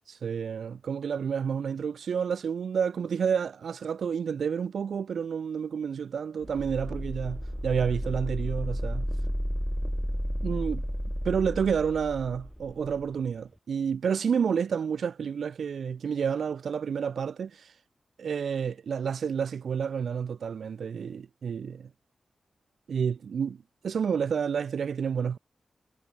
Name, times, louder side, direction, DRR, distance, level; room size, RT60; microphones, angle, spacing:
voice 1, 0.1-9.1 10.4-10.8 11.2-17.8 18.2-21.9 22.9-25.4, right 7 dB, 85° right, 1.3 m, -30 dB
sound 1, 6.4-13.1, equal, ahead, 0.4 m, -32 dB
cardioid pair, 70°, 0 cm